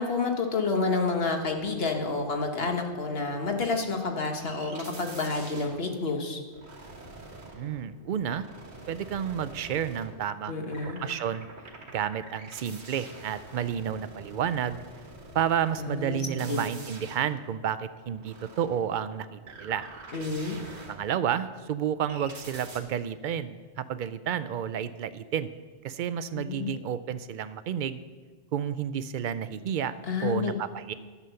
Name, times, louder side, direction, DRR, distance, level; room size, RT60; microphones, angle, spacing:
voice 1, 0.0-6.4 10.5-11.0 15.8-16.6 20.1-20.6 26.4-26.7 30.1-30.6, left 4 dB, 65° left, 3 dB, 1.5 m, -29 dB
sound 1, 4.4-10.4 10.7-21.5 22.1-22.8, right 2 dB, 80° right, 1.7 m, -47 dB
voice 2, 7.5-8.4 8.9-11.5 11.9-14.8 15.3-19.9 20.9-25.5 25.8-28.0 28.5-29.9 30.2-30.9, right 9 dB, 60° right, 14 dB, 0.6 m, -31 dB
11.0 x 7.1 x 6.9 m, 1.5 s
omnidirectional pair, 1.1 m